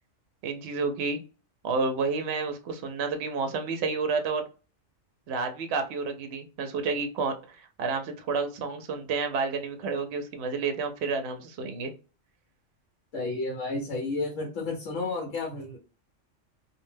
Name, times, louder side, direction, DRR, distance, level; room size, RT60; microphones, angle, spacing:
voice 1, 0.4-1.2 1.6-4.4 5.3-11.9, right 4 dB, 65° right, 6 dB, 0.8 m, -30 dB
voice 2, 13.1-15.8, left 3 dB, 85° left, 0 dB, 1.1 m, -31 dB
2.6 x 2.1 x 3.2 m, 0.35 s
omnidirectional pair, 1.3 m